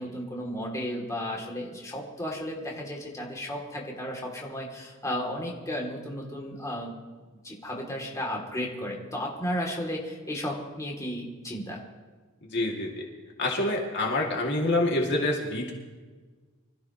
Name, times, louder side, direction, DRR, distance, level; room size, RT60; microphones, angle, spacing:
voice 1, 0.0-6.9 7.4-11.8, equal, 15° left, -2 dB, 2.9 m, -34 dB
voice 2, 12.4-13.0 13.4-15.7, left 2 dB, 60° left, -1 dB, 2.5 m, -27 dB
25.5 x 14.5 x 3.1 m, 1.4 s
head